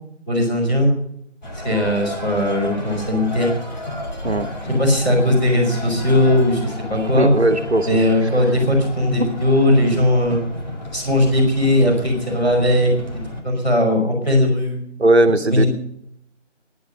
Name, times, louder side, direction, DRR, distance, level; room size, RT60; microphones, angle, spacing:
voice 1, 0.3-0.9 1.6-3.5 4.8-7.3 7.9-10.4 10.9-12.9 13.4-14.8 15.5-15.6, left 1 dB, 5° left, -8 dB, 3.2 m, -18 dB
sound 1, 1.4-13.4, equal, 35° left, 2.4 m, -31 dB
voice 2, 7.1-8.0 9.0-9.2 15.0-15.6, right 2 dB, 60° right, 8 dB, 1.6 m, -18 dB
12.0 x 11.0 x 6.5 m, 0.72 s
figure-of-eight pair, 165°, 36 cm